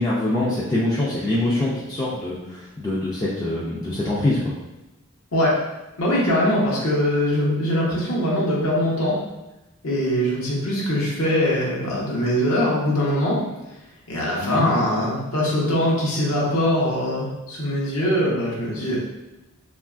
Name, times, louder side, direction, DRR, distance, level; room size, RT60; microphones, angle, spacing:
voice 1, 0.0-4.5 14.4-14.7, left 1 dB, 15° left, -7 dB, 0.3 m, -24 dB
voice 2, 6.0-9.2 9.8-13.4 14.1-19.0, equal, 75° left, -6 dB, 0.9 m, -22 dB
3.0 x 2.3 x 2.4 m, 0.99 s
head